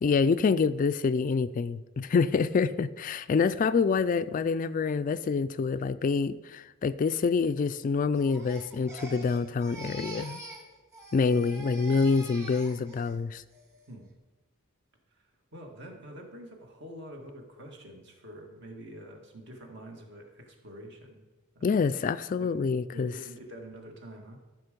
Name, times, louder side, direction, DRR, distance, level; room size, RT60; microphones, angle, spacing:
voice 1, 0.0-10.4 11.1-13.4 21.6-23.1, left 5 dB, 40° left, 13 dB, 0.3 m, -26 dB
Crying sobbing, 8.1-10.7 10.9-13.1 13.5-13.9, right 2 dB, 15° right, 1.7 m, -45 dB
voice 2, 15.5-21.3 21.6-21.7 22.4-22.5 22.9-24.4, right 1 dB, 55° right, 2 dB, 1.9 m, -46 dB
14.0 x 6.2 x 5.2 m, 1.2 s
head